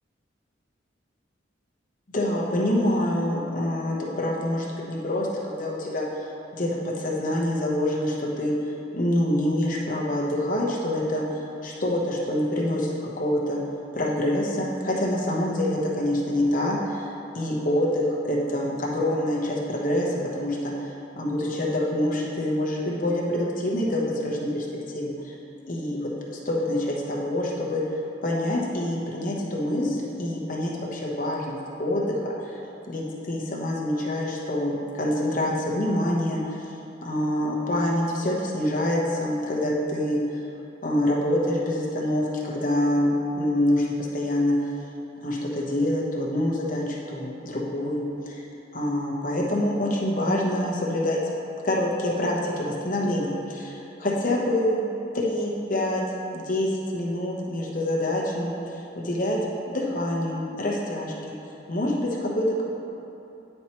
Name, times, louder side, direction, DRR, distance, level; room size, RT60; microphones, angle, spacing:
voice 1, 2.1-6.3 6.5-8.5 8.9-12.9 13.2-13.6 13.9-17.1 17.3-24.7 24.9-25.3 25.7-27.8 28.2-32.6 32.9-36.7 37.0-40.4 40.8-44.6 45.2-48.4 48.7-51.2 51.6-54.9 55.1-56.0 56.3-59.4 59.7-61.1 61.7-62.6, left 1 dB, 45° left, -4 dB, 1.0 m, -26 dB
9.8 x 4.4 x 3.0 m, 2.8 s
head